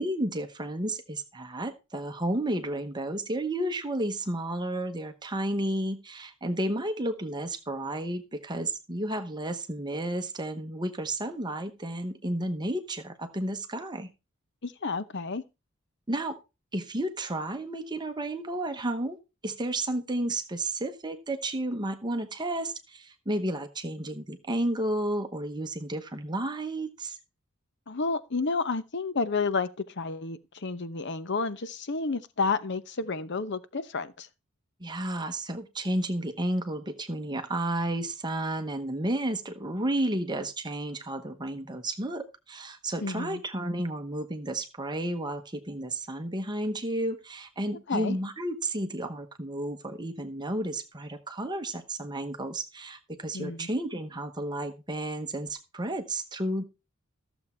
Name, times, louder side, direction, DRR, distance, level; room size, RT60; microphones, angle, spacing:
voice 1, 0.0-14.1 16.1-16.4 16.7-19.2 19.4-27.2 34.8-56.6, right 1 dB, 20° right, 1.0 m, -32 dB
voice 2, 14.6-15.4 27.9-34.3 43.0-43.4 47.7-48.2 53.3-53.7, left 4 dB, 55° left, 0.9 m, -31 dB
14.0 x 7.2 x 4.4 m
head